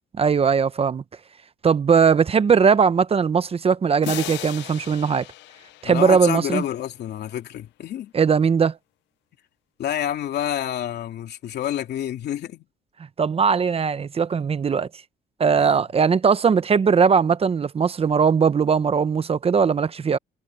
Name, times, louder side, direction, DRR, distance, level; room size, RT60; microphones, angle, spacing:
voice 1, 0.2-1.0 1.6-5.3 5.8-6.6 8.1-8.8 13.2-14.9 15.4-20.2, right 6 dB, 35° right, 0.8 m, -19 dB
sound 1, 4.0-6.8, left 17 dB, 90° left, 0.6 m, -37 dB
voice 2, 5.8-8.1 9.8-12.7 15.6-15.7, left 11 dB, 70° left, 3.0 m, -28 dB
cardioid pair, 100°, 18 cm